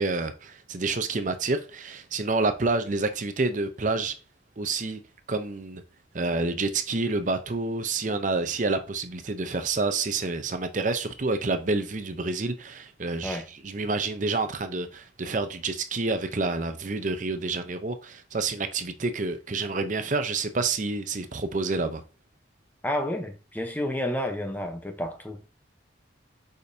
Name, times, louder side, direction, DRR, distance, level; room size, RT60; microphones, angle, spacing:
voice 1, 0.0-4.1 4.6-5.0 5.3-5.8 6.1-22.0, right 3 dB, 40° right, 0.6 m, -28 dB
voice 2, 22.8-25.4, left 1 dB, 10° left, 0.8 m, -30 dB
6.8 x 5.0 x 2.7 m
head